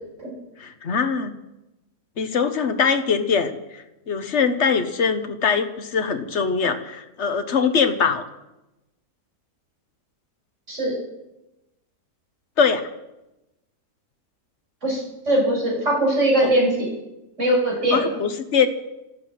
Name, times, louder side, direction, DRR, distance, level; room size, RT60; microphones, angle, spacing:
voice 1, 0.6-1.4 2.2-8.2 12.6-12.9 16.4-16.5 17.9-18.7, left 6 dB, 50° left, 8 dB, 1.5 m, -22 dB
voice 2, 14.8-16.9 17.4-18.1, right 1 dB, 50° right, -2 dB, 6.6 m, -21 dB
12.5 x 12.0 x 9.2 m, 0.95 s
omnidirectional pair, 1.6 m